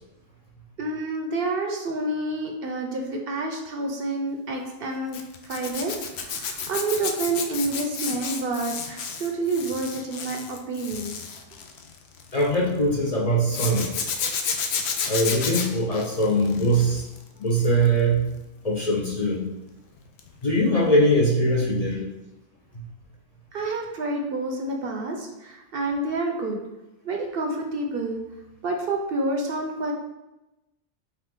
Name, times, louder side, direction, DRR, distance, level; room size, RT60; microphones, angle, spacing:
voice 1, 0.8-5.2 5.5-5.9 6.3-11.2 23.5-26.6 27.0-28.2 28.6-29.9, right 2 dB, 60° right, 2 dB, 0.8 m, -28 dB
Zipper (clothing), 5.1-12.6 13.5-17.2 17.5-17.9 20.2-20.3 20.6-20.7, left 6 dB, 70° left, 0.8 m, -31 dB
voice 2, 12.3-13.9 15.0-17.0 17.4-18.3 18.6-19.5 20.4-22.1 22.7-22.8, right 1 dB, 40° left, -3 dB, 0.6 m, -22 dB
5.8 x 2.5 x 3.6 m, 0.97 s
omnidirectional pair, 1.2 m